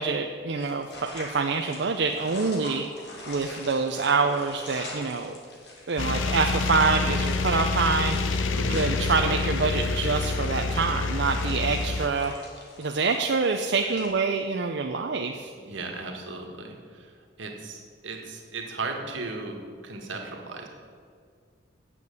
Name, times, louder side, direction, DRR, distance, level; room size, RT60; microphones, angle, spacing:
voice 1, 0.0-2.8 3.3-5.3 5.9-8.2 8.7-12.3 12.8-15.5, right 4 dB, 65° right, 4 dB, 0.5 m, -26 dB
sound 1, 0.6-14.1, left 2 dB, 60° left, 2.3 m, -44 dB
sound 2, 6.0-12.1, left 3 dB, 90° left, 0.7 m, -27 dB
voice 2, 15.6-17.1 17.4-19.6 19.8-20.7, right 3 dB, 80° right, 2 dB, 1.7 m, -36 dB
9.0 x 6.8 x 8.3 m, 2.1 s
head